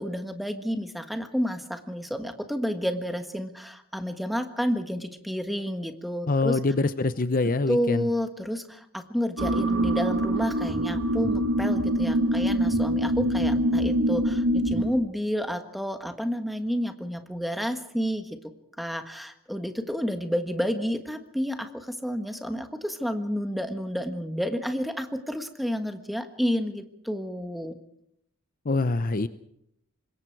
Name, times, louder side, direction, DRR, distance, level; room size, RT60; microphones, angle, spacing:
voice 1, 0.0-6.6 7.7-18.4 18.8-27.8, equal, ahead, 7 dB, 1.5 m, -30 dB
voice 2, 6.3-8.1 28.6-29.3, left 3 dB, 40° left, 12 dB, 0.7 m, -24 dB
sound 1, 9.4-14.9, right 1 dB, 90° right, 3.1 m, -24 dB
25.5 x 21.5 x 4.7 m, 0.74 s
head